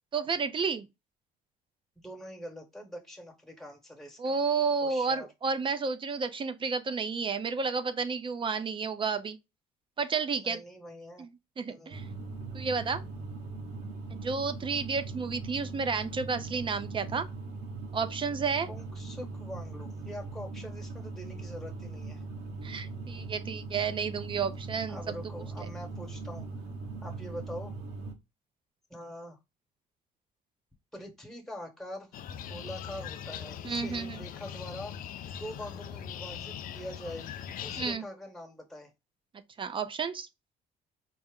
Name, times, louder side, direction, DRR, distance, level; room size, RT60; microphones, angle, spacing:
voice 1, 0.1-0.9 4.2-9.4 10.0-10.6 11.2-11.3 11.6-12.0 12.5-13.0 14.1-17.3 17.9-18.7 22.6-25.2 25.6-25.7 33.6-34.2 37.8-38.0 39.6-40.3, right 5 dB, 30° right, 0.5 m, -31 dB
voice 2, 2.0-4.4 4.8-5.3 10.3-11.2 11.7-12.0 18.7-22.2 24.9-26.5 27.0-27.7 28.9-29.4 30.9-35.0 35.4-38.9, equal, ahead, 1.2 m, -44 dB
sound 1, 11.9-28.1, right 3 dB, 90° right, 1.0 m, -40 dB
sound 2, 32.1-37.9, left 9 dB, 55° left, 0.4 m, -40 dB
4.4 x 2.1 x 3.5 m
cardioid pair, 110°, 17 cm